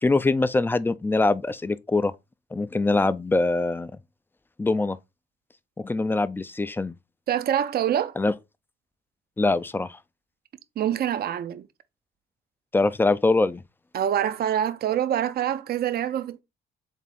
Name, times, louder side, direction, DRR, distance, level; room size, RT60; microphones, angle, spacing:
voice 1, 0.0-2.1 2.5-3.9 4.6-5.0 5.8-6.9 8.2-8.3 9.4-10.0 12.7-13.6, left 3 dB, 10° left, 0.3 m, -23 dB
voice 2, 7.3-8.1 10.8-11.7 13.9-16.4, right 10 dB, 50° right, 0.5 m, -25 dB
3.7 x 3.5 x 4.1 m
cardioid pair, 90°, 20 cm